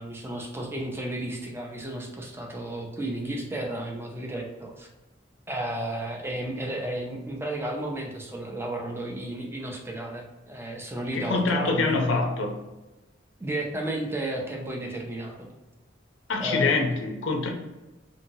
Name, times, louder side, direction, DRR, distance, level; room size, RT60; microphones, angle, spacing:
voice 1, 0.0-4.9 5.5-11.9 13.4-15.5 16.4-16.7, right 1 dB, 15° right, 0 dB, 0.5 m, -33 dB
voice 2, 11.1-12.6 16.3-17.5, left 3 dB, 75° left, 2 dB, 0.6 m, -25 dB
2.7 x 2.7 x 2.7 m, 1.1 s
head